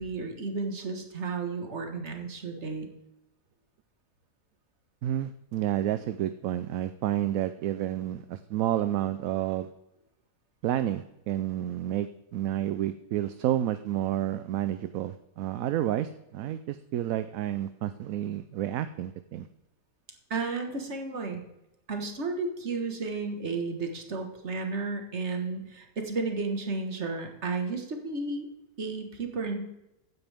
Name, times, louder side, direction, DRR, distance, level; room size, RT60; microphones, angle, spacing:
voice 1, 0.0-2.9 20.3-21.4 21.9-28.5 28.8-29.7, right 3 dB, 50° right, 4 dB, 1.8 m, -33 dB
voice 2, 5.0-9.7 10.6-19.5, right 12 dB, 75° right, 12 dB, 1.0 m, -30 dB
15.0 x 10.0 x 3.5 m, 0.91 s
omnidirectional pair, 1.5 m